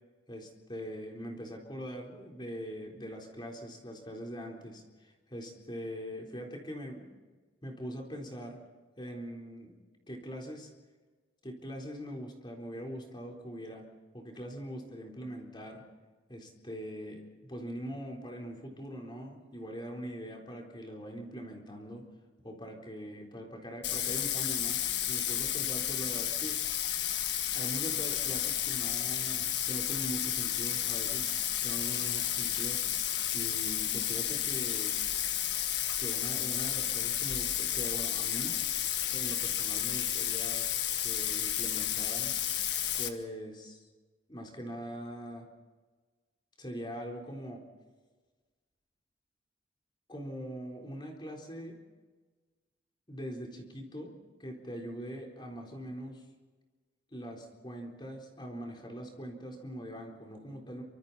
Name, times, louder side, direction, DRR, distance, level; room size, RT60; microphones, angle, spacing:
voice 1, 0.3-7.1 7.6-8.6 9.0-9.8 10.1-10.7 11.4-13.9 14.1-15.8 16.3-22.0 22.4-24.8 25.1-26.6 27.5-31.4 31.6-32.8 33.3-35.0 36.0-38.6 39.1-40.7 41.0-42.3 43.0-43.8 44.3-45.5 46.6-47.6 50.1-51.8 53.1-54.1 54.4-56.2 57.1-60.8, equal, 25° left, 1 dB, 4.0 m, -42 dB
Bathtub (filling or washing), 23.8-43.1, left 10 dB, 65° left, 1.6 m, -32 dB
28.0 x 25.5 x 4.2 m, 1.4 s
head